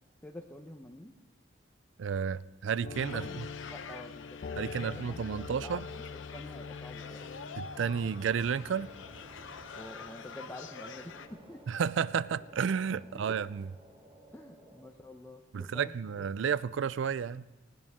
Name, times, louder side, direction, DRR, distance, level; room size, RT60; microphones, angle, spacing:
voice 1, 0.2-1.1 3.1-7.3 9.8-11.6 13.1-13.4 14.3-15.9, left 1 dB, 10° left, 0.8 m, -48 dB
voice 2, 2.0-3.5 4.6-5.8 7.6-8.9 11.7-13.7 15.5-17.5, right 7 dB, 65° right, 0.4 m, -32 dB
sound 1, 2.8-13.3 13.7-13.8 14.3-14.5, left 5 dB, 50° left, 0.4 m, -46 dB
sound 2, 2.9-11.3, left 6 dB, 70° left, 0.8 m, -47 dB
sound 3, 7.0-14.9, right 1 dB, 30° right, 1.8 m, -55 dB
19.5 x 16.5 x 3.6 m
head